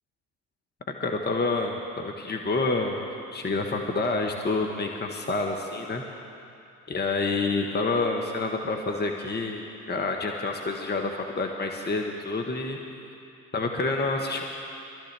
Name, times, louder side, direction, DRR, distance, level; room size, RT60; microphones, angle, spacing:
voice 1, 0.9-3.0 3.3-6.0 6.9-12.8 13.5-14.4, left 3 dB, 25° left, 2 dB, 1.4 m, -28 dB
23.0 x 13.5 x 3.4 m, 2.6 s
hypercardioid pair, 60°, 40 cm